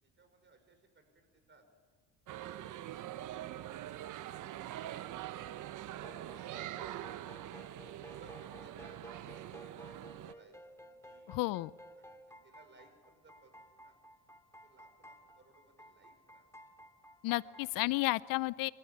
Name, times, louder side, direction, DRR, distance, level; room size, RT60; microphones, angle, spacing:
voice 1, 0.0-1.6 7.8-9.4 10.0-11.4 12.0-14.0 14.6-16.5 17.4-17.7, right 3 dB, 30° right, 7 dB, 5.7 m, -65 dB
sound 1, 2.3-10.3, right 13 dB, 60° right, 0.9 m, -44 dB
sound 2, 5.9-17.9, right 1 dB, 10° left, 2.4 m, -55 dB
voice 2, 11.3-11.7 17.2-18.7, left 20 dB, 70° left, 20 dB, 0.6 m, -32 dB
27.5 x 14.0 x 8.6 m, 1.5 s
supercardioid pair, 85°, 35 cm